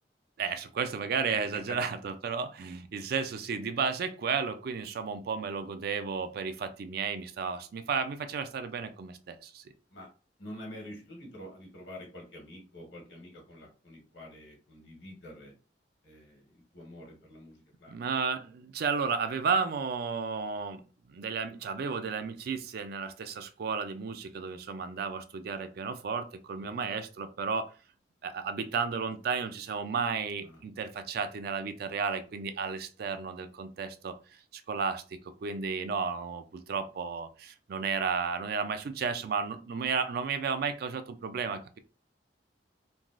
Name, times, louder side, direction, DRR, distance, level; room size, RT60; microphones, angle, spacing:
voice 1, 0.4-9.6 17.9-20.8 21.1-27.7 28.2-34.1 34.5-41.8, right 5 dB, 60° right, 10 dB, 0.4 m, -33 dB
voice 2, 10.4-15.5 16.0-18.0 26.6-26.8 30.4-30.6, left 1 dB, 85° left, -1 dB, 1.4 m, -47 dB
3.3 x 2.3 x 2.4 m, 0.35 s
head